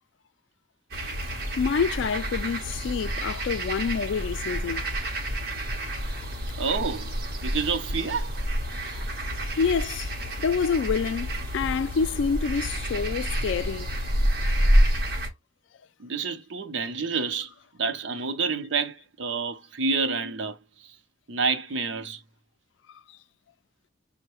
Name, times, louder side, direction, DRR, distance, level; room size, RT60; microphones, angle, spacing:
sound 1, 0.9-15.3, equal, 50° right, 1.0 m, -28 dB
voice 1, 1.6-4.8 6.2-6.3 9.0-9.1 9.6-10.1 10.4-14.0 22.9-23.2, left 6 dB, 75° left, 0.3 m, -27 dB
voice 2, 6.6-7.1 7.4-8.4 16.0-17.5 17.8-20.6 21.3-22.2, right 5 dB, 80° right, 0.6 m, -28 dB
5.3 x 2.1 x 3.0 m
head